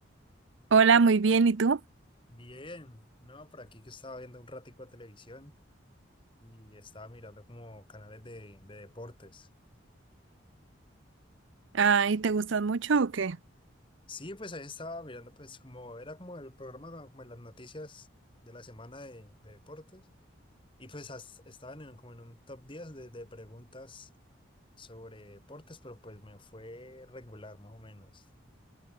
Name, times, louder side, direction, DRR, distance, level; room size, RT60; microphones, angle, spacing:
voice 1, 0.7-1.8 11.7-13.4, right 5 dB, 70° right, 0.6 m, -23 dB
voice 2, 2.3-5.5 6.4-9.5 14.1-18.1 18.4-20.1 20.8-24.1 24.8-28.3, left 2 dB, 25° left, 2.0 m, -46 dB
head